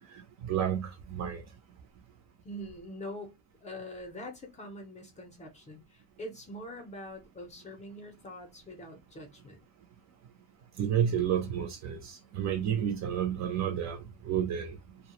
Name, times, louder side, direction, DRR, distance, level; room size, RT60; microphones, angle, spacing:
voice 1, 0.4-1.4 10.8-14.8, right 9 dB, 45° right, 0.5 m, -30 dB
voice 2, 2.4-9.6, equal, 20° left, 0.5 m, -44 dB
2.2 x 2.0 x 2.9 m
cardioid pair, 180°, 39 cm